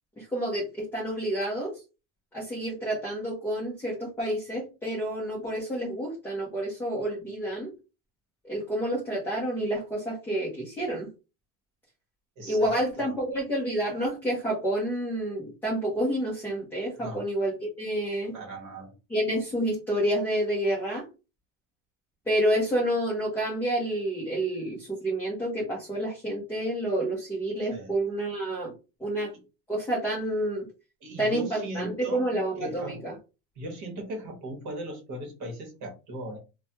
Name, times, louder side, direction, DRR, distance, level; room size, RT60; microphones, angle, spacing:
voice 1, 0.2-1.8 2.3-7.7 8.5-11.1 12.4-18.3 19.1-21.0 22.3-28.7 29.0-29.3 29.7-30.7 31.2-33.1, right 1 dB, 5° left, 0.5 m, -29 dB
voice 2, 12.4-13.1 17.0-17.3 18.3-18.9 27.7-28.0 31.0-33.0 33.6-36.4, right 1 dB, 35° right, 1.1 m, -38 dB
3.1 x 2.2 x 2.7 m
supercardioid pair, 150°, 49 cm